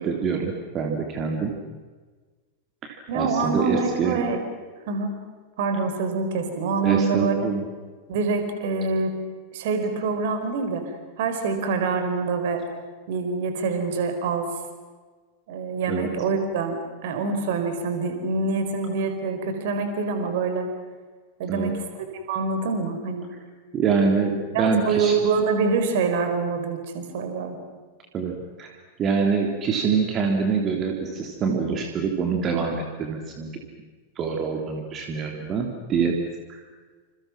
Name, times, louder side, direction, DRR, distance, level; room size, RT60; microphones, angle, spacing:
voice 1, 0.0-1.5 2.8-4.2 6.8-7.6 15.9-16.1 21.5-21.7 23.7-25.2 28.1-28.7 29.0-33.5 34.2-36.1 36.5-36.6, right 5 dB, 30° right, 2 dB, 3.4 m, -25 dB
voice 2, 3.1-4.4 4.9-5.1 5.6-7.3 8.1-9.1 9.5-10.8 11.2-12.6 13.1-14.5 15.5-20.7 21.4-21.8 22.1-23.2 24.5-27.6, right 4 dB, 55° right, 7 dB, 4.8 m, -25 dB
29.0 x 28.0 x 6.1 m, 1.4 s
figure-of-eight pair, 90°, 0 cm